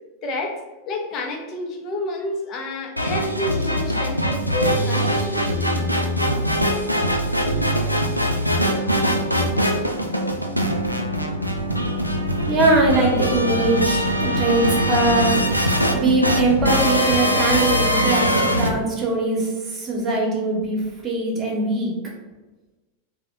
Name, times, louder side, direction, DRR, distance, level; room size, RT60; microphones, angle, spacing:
voice 1, 0.2-5.6, left 2 dB, 35° left, 3 dB, 0.6 m, -29 dB
sound 1, 3.0-18.7, equal, 90° right, 0.3 m, -22 dB
voice 2, 12.4-15.4 15.9-21.9, right 2 dB, 20° right, -2 dB, 1.0 m, -21 dB
3.4 x 2.2 x 3.6 m, 1.2 s
figure-of-eight pair, 90°, 0 cm